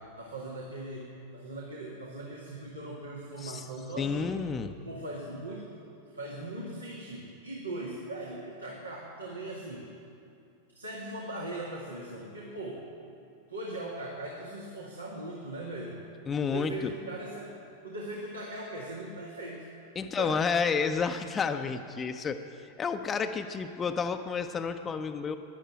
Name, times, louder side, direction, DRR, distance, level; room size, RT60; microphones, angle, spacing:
voice 1, 0.2-4.3 4.8-5.7 6.1-9.9 10.7-12.9 13.5-16.0 16.4-17.6 17.8-19.7 20.0-20.4, right 1 dB, 80° right, -3 dB, 2.1 m, -39 dB
voice 2, 4.0-4.7 16.3-16.9 20.0-25.4, left 5 dB, 20° left, 7 dB, 0.7 m, -30 dB
15.0 x 11.0 x 8.9 m, 2.6 s
figure-of-eight pair, 90°, 0 cm